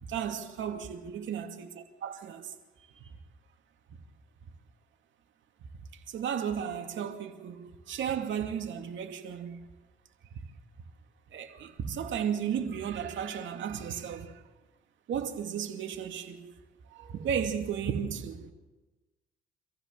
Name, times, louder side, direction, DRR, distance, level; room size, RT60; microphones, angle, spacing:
voice 1, 0.0-3.2 5.6-9.7 11.3-14.4 15.1-16.5 16.9-18.5, right 8 dB, 75° right, 2.5 m, -34 dB
25.5 x 15.0 x 7.5 m
cardioid pair, 90°, 20 cm